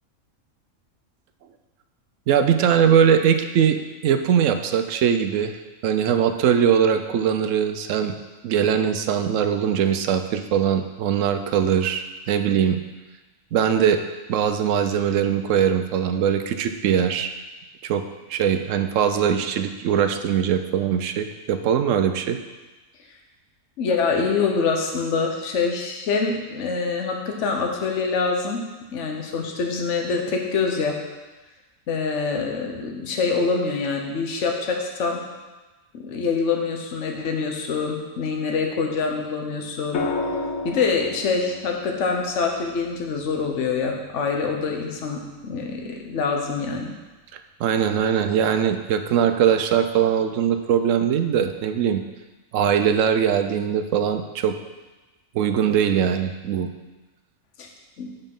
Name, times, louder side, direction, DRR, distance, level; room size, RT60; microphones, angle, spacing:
voice 1, 2.3-3.8 4.0-5.5 5.8-8.1 8.4-12.8 13.5-14.0 14.3-17.3 17.8-18.0 18.3-22.4 47.6-52.0 52.5-54.6 55.3-56.7, right 8 dB, 70° right, 8 dB, 0.9 m, -21 dB
voice 2, 23.8-28.6 28.9-31.0 31.9-35.2 35.9-40.0 40.6-46.9 57.6-57.7 58.0-58.1, left 4 dB, 60° left, 2 dB, 1.3 m, -25 dB
sound 1, 39.9-44.1 45.8-46.2, left 3 dB, 90° left, 1.3 m, -32 dB
7.2 x 5.5 x 5.4 m, 1.2 s
omnidirectional pair, 1.4 m